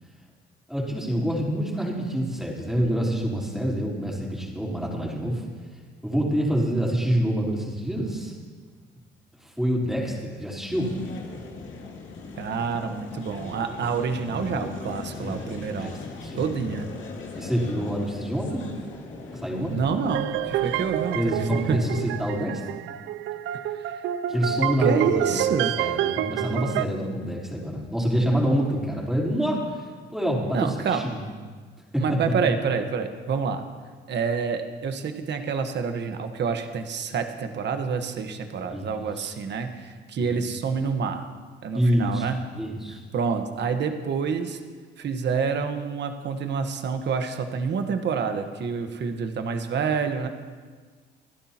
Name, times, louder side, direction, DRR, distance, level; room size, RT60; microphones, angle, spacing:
voice 1, 0.7-5.4 6.0-8.4 9.4-10.9 15.2-15.9 16.2-16.5 17.4-18.7 19.3-19.7 21.1-22.6 24.3-25.4 25.8-29.8 30.1-31.2 31.9-32.2 38.7-38.9 40.2-40.3 41.7-42.3 42.6-43.0, equal, ahead, -4 dB, 3.8 m, -26 dB
sound 1, 10.7-22.4, left 3 dB, 75° left, 2.3 m, -39 dB
voice 2, 12.4-15.9 16.4-16.9 19.7-21.9 23.7-24.0 24.8-25.7 30.5-31.0 32.0-33.6 34.1-41.3 41.6-42.5 43.1-44.6 45.0-50.3, right 6 dB, 60° right, 6 dB, 1.3 m, -28 dB
sound 2, 20.1-26.9, right 11 dB, 85° right, 0.4 m, -28 dB
28.0 x 10.5 x 2.9 m, 1.5 s
cardioid pair, 90°, 20 cm